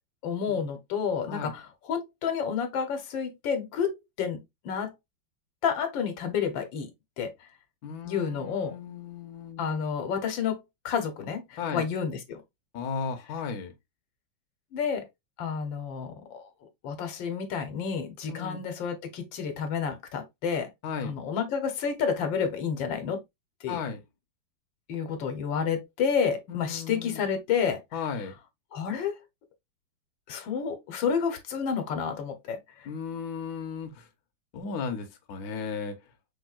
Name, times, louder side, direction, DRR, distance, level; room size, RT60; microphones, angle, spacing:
voice 1, 0.2-4.9 5.6-6.9 7.2-7.5 8.0-8.8 9.6-12.4 14.7-15.1 15.4-16.5 16.8-20.7 21.0-23.2 23.6-23.8 24.9-27.8 28.7-29.2 30.3-32.9, left 6 dB, 80° left, 1.6 m, -30 dB
voice 2, 7.8-9.8 11.6-11.8 12.7-13.7 18.3-18.6 20.8-21.2 23.7-24.0 26.5-27.2 27.9-28.3 32.8-34.1 34.5-35.9, left 6 dB, 60° left, 1.2 m, -35 dB
5.3 x 3.5 x 2.3 m
omnidirectional pair, 2.1 m